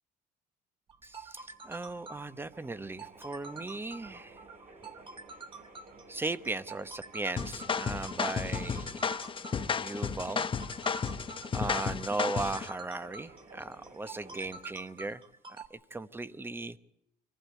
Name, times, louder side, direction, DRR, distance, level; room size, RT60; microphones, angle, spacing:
sound 1, 0.9-15.7, right 4 dB, 30° right, 2.4 m, -47 dB
sound 2, 0.9-14.9, right 3 dB, 45° right, 3.6 m, -55 dB
voice 1, 1.0-4.4 6.1-9.0 9.8-10.5 11.5-15.2 15.5-16.8, right 2 dB, 15° right, 14 dB, 0.9 m, -37 dB
sound 3, 7.4-12.7, left 6 dB, 30° left, 1.0 m, -33 dB
23.5 x 15.0 x 9.4 m, 0.79 s
cardioid pair, 110°, 17 cm